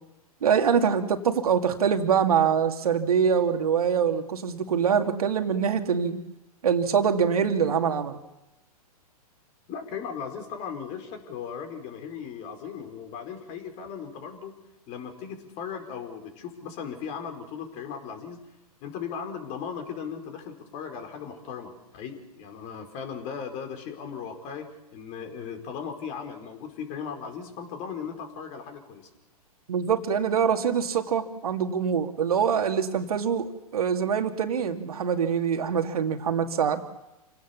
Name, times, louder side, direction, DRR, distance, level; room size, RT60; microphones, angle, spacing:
voice 1, 0.4-6.2 6.6-8.2 29.7-36.8, right 7 dB, 70° right, 5 dB, 2.2 m, -24 dB
voice 2, 9.7-14.5 14.9-18.4 18.8-29.1, left 7 dB, 35° left, 5 dB, 4.6 m, -37 dB
28.0 x 17.5 x 7.1 m, 0.98 s
figure-of-eight pair, 115°, 20 cm